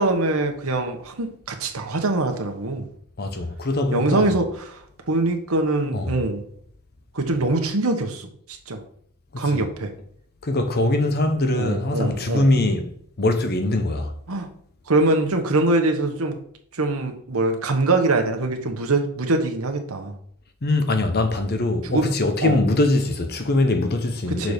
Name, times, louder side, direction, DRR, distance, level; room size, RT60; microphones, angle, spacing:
voice 1, 0.0-2.8 3.9-4.4 4.7-6.4 7.1-8.3 8.7-8.8 9.4-9.9 11.5-12.5 14.3-14.5 14.9-16.4 16.7-20.1 21.9-22.0 22.4-22.6 24.3-24.5, right 2 dB, 70° right, 1.1 m, -23 dB
voice 2, 3.2-4.4 5.9-6.1 9.3-9.6 10.4-12.9 13.2-14.1 20.6-24.5, left 2 dB, 45° left, 0.8 m, -22 dB
6.7 x 4.1 x 5.1 m
head